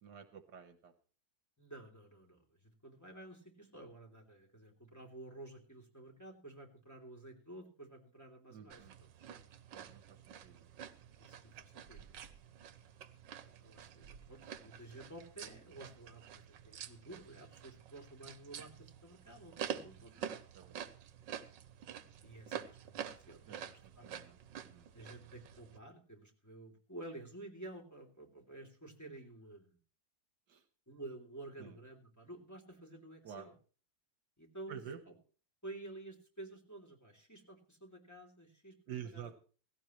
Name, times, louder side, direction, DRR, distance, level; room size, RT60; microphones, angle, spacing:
voice 1, 0.0-0.9 8.5-9.0 9.7-10.7 14.6-14.7 20.5-20.8 23.5-24.9 30.5-30.6 31.6-31.8 33.2-33.5 34.7-35.0 38.9-39.4, right 8 dB, 70° right, 9 dB, 1.7 m, -50 dB
voice 2, 1.6-9.1 11.2-12.2 13.4-20.3 22.2-24.1 24.9-29.8 30.9-33.5 34.4-34.8 35.1-35.2 35.6-38.7 39.1-39.4, right 2 dB, 10° left, 0 dB, 3.1 m, -52 dB
sound 1, 8.7-25.8, right 9 dB, 85° right, 1.6 m, -48 dB
17.0 x 16.5 x 3.1 m, 0.38 s
omnidirectional pair, 1.9 m